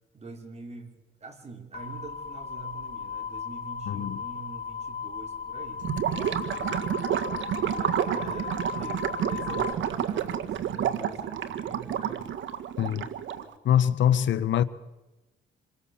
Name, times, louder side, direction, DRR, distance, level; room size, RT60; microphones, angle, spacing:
voice 1, 0.1-5.9 6.5-7.0 7.5-12.3, right 4 dB, 35° right, 5.2 m, -44 dB
sound 1, 1.7-9.7, left 6 dB, 50° left, 2.2 m, -36 dB
voice 2, 3.9-4.2 12.8-13.1 13.6-14.6, left 10 dB, 70° left, 1.2 m, -23 dB
Gurgling / Liquid, 5.8-13.5, right 9 dB, 75° right, 1.8 m, -30 dB
27.0 x 22.5 x 7.3 m
cardioid pair, 90°, 20 cm